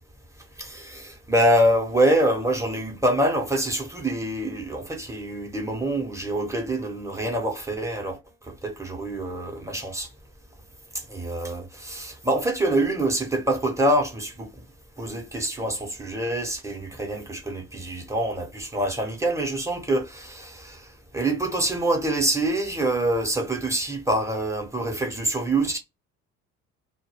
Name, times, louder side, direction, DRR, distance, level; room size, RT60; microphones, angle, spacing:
voice 1, 0.6-8.2 8.5-10.1 11.1-14.5 15.0-20.9 21.1-25.8, right 1 dB, 5° right, 0.8 m, -25 dB
2.2 x 2.1 x 3.2 m
figure-of-eight pair, 50°, 44 cm